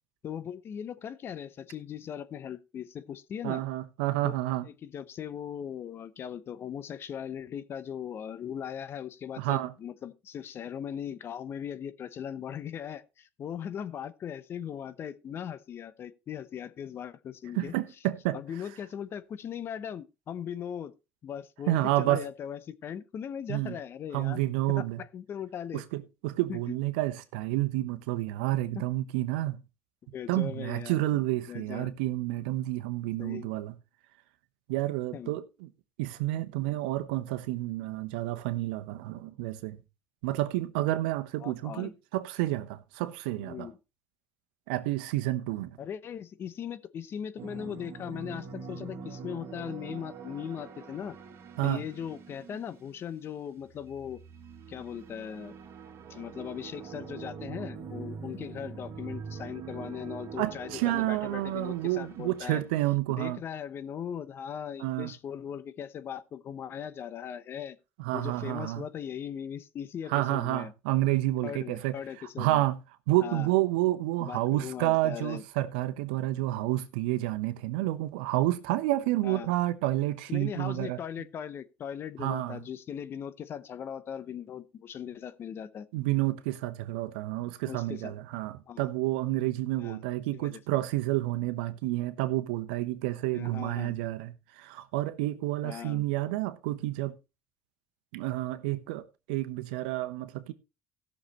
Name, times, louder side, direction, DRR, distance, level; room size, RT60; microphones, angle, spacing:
voice 1, 0.2-3.6 4.2-4.3 4.8-17.7 18.3-20.9 21.2-24.4 24.7-25.8 26.5-26.8 28.7-28.8 30.1-31.0 31.5-31.9 33.2-33.5 35.1-35.3 41.4-41.9 43.4-43.8 45.8-51.2 51.6-54.2 54.7-55.6 56.1-62.6 63.1-67.8 68.1-70.7 71.4-72.7 73.2-73.5 74.2-75.4 79.2-79.5 80.3-85.9 87.6-88.1 88.7-88.9 89.8-90.0 90.3-90.6 93.3-94.0 95.6-96.0, left 8 dB, 50° left, 0.9 m, -39 dB
voice 2, 3.4-4.7 9.4-9.7 17.6-18.4 21.7-22.2 23.5-23.8 24.1-25.0 25.7-29.6 30.3-33.7 34.7-35.7 36.0-39.8 40.2-43.7 44.7-45.8 51.6-51.8 60.4-63.4 64.8-65.1 68.0-68.8 70.1-72.8 73.1-81.0 82.2-82.6 85.9-97.1 98.1-100.5, right 16 dB, 90° right, 1.0 m, -30 dB
sound 1, 47.4-53.1 53.6-62.7, right 5 dB, 60° right, 2.2 m, -44 dB
17.5 x 6.6 x 3.1 m
supercardioid pair, 80°, 5 cm